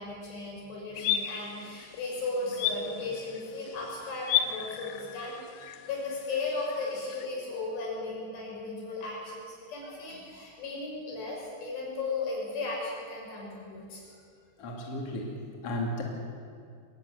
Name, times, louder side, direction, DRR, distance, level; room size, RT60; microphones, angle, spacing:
voice 1, 0.0-14.0, left 3 dB, 60° left, -3 dB, 8.3 m, -36 dB
sound 1, 1.0-7.3, left 10 dB, 80° left, 3.1 m, -35 dB
voice 2, 14.6-16.0, left 1 dB, 40° left, 0 dB, 2.6 m, -34 dB
22.5 x 19.0 x 7.8 m, 2.3 s
omnidirectional pair, 5.5 m